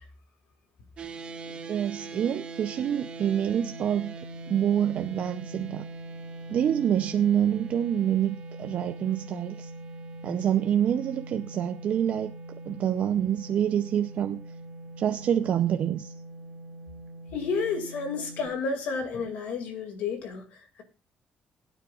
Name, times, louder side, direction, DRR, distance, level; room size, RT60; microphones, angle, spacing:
sound 1, 1.0-18.5, right 2 dB, 45° right, 1.6 m, -42 dB
voice 1, 1.7-4.1 4.5-5.8 6.5-9.7 10.2-12.3 12.7-14.4 15.0-16.1, right 9 dB, 60° right, 0.5 m, -26 dB
voice 2, 17.3-20.8, left 5 dB, 90° left, 2.2 m, -31 dB
20.0 x 9.3 x 2.4 m
cardioid pair, 125°, 3 cm